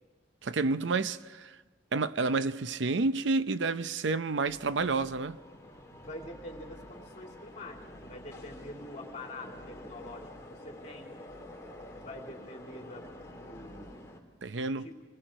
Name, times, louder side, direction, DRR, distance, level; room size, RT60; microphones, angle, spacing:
voice 1, 0.4-1.6 1.9-5.4 14.4-14.9, right 3 dB, 80° right, 0.6 m, -29 dB
sound 1, 4.5-14.2, left 1 dB, 15° left, 2.7 m, -48 dB
voice 2, 5.9-11.1 11.9-14.0 14.5-15.0, left 1 dB, 40° left, 3.1 m, -46 dB
28.0 x 20.0 x 5.1 m
head